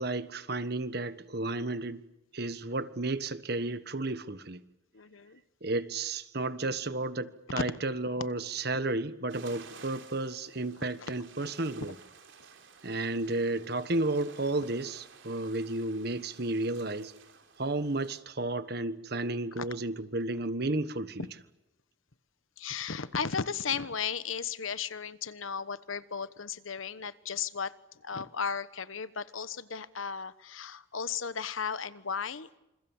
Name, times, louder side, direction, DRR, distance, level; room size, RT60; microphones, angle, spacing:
voice 1, 0.0-2.0 2.3-4.6 5.6-11.9 12.8-17.1 17.6-21.3, right 2 dB, 50° right, 13 dB, 1.4 m, -32 dB
voice 2, 4.9-5.4 7.6-7.7 11.0-11.1 19.6-19.7 22.6-27.7 28.0-32.6, left 6 dB, 85° left, 14 dB, 1.2 m, -35 dB
sound 1, 9.3-18.2, right 5 dB, 70° right, 3.8 m, -53 dB
28.0 x 27.5 x 7.3 m, 0.95 s
head